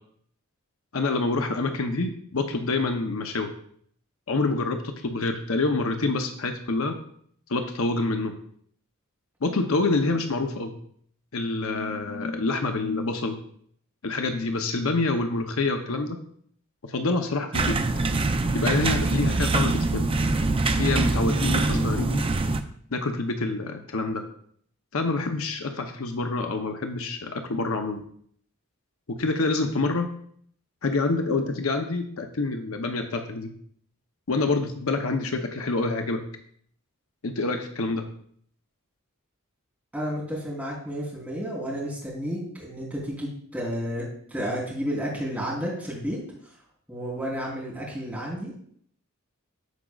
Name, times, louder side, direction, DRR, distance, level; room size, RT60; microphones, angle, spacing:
voice 1, 0.9-3.5 4.3-6.9 7.5-8.3 9.4-10.7 11.3-13.4 14.0-16.2 16.8-17.8 18.5-20.1 20.8-22.2 22.9-24.2 24.9-28.0 29.1-30.1 30.8-33.5 34.3-36.2 37.2-38.0, left 3 dB, 75° left, 5 dB, 0.8 m, -27 dB
sound 1, 17.5-22.6, right 3 dB, 25° right, 0.5 m, -24 dB
voice 2, 39.9-46.2 46.9-48.7, equal, 5° right, -5 dB, 3.4 m, -31 dB
14.5 x 5.1 x 2.4 m, 0.62 s
head